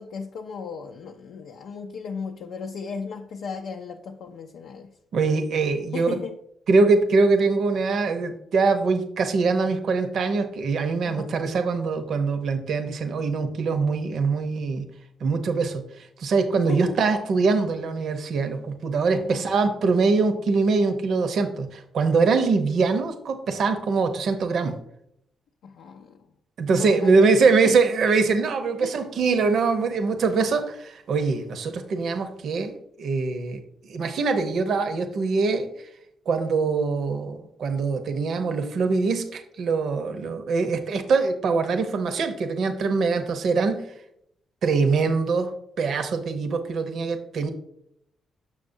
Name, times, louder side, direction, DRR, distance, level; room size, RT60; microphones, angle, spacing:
voice 1, 0.0-4.9 5.9-6.4 11.0-11.4 16.7-17.0 19.1-19.4 25.6-26.3 26.7-27.3 27.6-27.8 28.8-28.9, left 5 dB, 75° left, 0.5 m, -35 dB
voice 2, 5.1-6.2 6.7-14.9 15.2-24.8 26.6-33.6 33.9-35.7 36.3-43.9 44.6-47.5, right 4 dB, 65° right, 0.7 m, -23 dB
7.1 x 6.1 x 2.6 m
hypercardioid pair, 45°, 0 cm